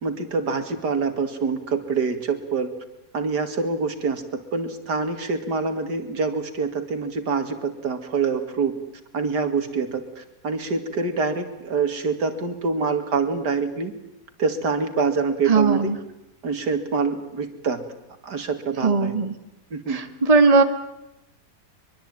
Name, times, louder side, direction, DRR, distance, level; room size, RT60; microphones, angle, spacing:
voice 1, 0.0-2.7 3.1-8.8 9.1-13.9 14.4-15.9 16.4-17.8 18.2-19.1 19.7-20.0, right 4 dB, 80° right, 8 dB, 2.8 m, -25 dB
voice 2, 15.5-16.0 18.8-19.3 19.9-20.6, right 4 dB, 20° right, 7 dB, 1.8 m, -18 dB
23.5 x 23.0 x 9.1 m, 0.88 s
omnidirectional pair, 1.8 m